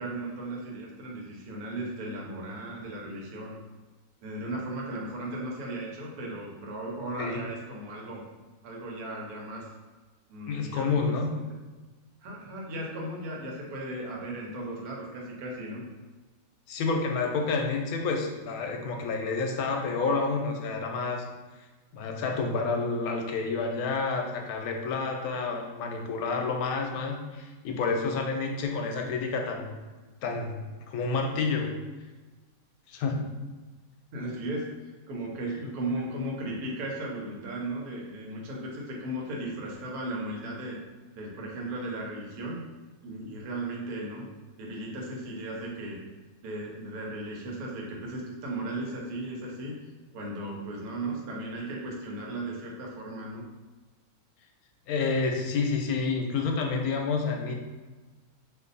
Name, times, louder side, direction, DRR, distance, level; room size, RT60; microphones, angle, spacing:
voice 1, 0.0-3.6 4.2-8.2 8.6-9.7 10.3-11.5 12.2-15.8 34.1-34.7 35.1-40.8 41.1-42.6 43.0-44.2 44.6-46.0 46.4-49.7 50.1-53.4, right 1 dB, 85° right, -2 dB, 1.3 m, -36 dB
voice 2, 10.4-11.3 16.7-21.2 21.9-29.7 30.2-31.7 32.9-33.3 54.9-57.6, left 4 dB, 90° left, 2 dB, 1.1 m, -29 dB
2.6 x 2.6 x 3.9 m, 1.3 s
omnidirectional pair, 1.5 m